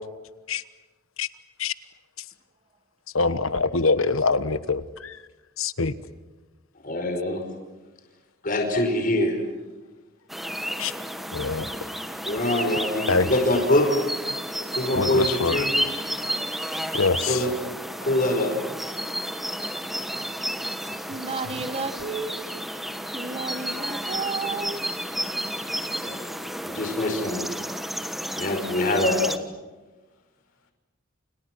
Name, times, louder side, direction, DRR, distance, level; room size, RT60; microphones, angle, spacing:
voice 1, 3.1-5.1 5.6-5.9 10.8-10.9 11.3-11.7 13.1-13.3 14.9-15.6 17.0-17.4, left 4 dB, 80° left, 14 dB, 1.3 m, -24 dB
voice 2, 6.8-7.4 8.4-9.4 12.2-13.8 14.7-15.7 17.2-17.5 18.0-18.6 26.0-26.2 26.6-27.5 28.4-29.3, left 1 dB, 40° left, 3 dB, 5.2 m, -24 dB
sound 1, 10.3-29.4, equal, ahead, 1.3 m, -32 dB
voice 3, 21.1-22.7 23.1-24.8, right 4 dB, 30° right, 10 dB, 1.7 m, -32 dB
29.5 x 29.0 x 6.3 m, 1.2 s
head